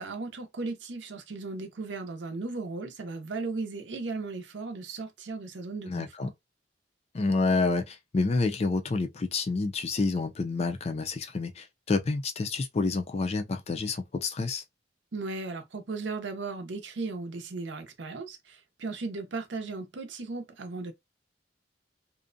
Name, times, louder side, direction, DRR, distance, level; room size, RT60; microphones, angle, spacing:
voice 1, 0.0-6.3 15.1-20.9, right 3 dB, 75° right, 0.6 m, -36 dB
voice 2, 5.9-6.3 7.1-14.6, left 3 dB, 35° left, 0.4 m, -28 dB
2.6 x 2.1 x 2.5 m
head